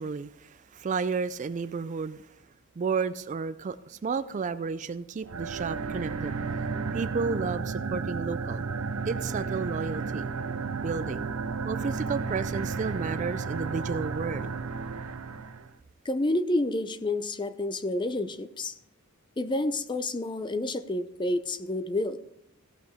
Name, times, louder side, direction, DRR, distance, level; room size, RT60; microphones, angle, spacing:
voice 1, 0.0-2.3 2.8-6.4 6.9-8.6 9.1-10.3 10.8-11.3 11.6-14.5, right 5 dB, 35° right, 14 dB, 0.3 m, -32 dB
sound 1, 5.2-15.7, right 4 dB, 75° right, 0.6 m, -33 dB
voice 2, 16.1-18.8 19.4-22.2, left 1 dB, 20° left, 12 dB, 0.5 m, -29 dB
16.0 x 5.8 x 4.2 m, 0.78 s
head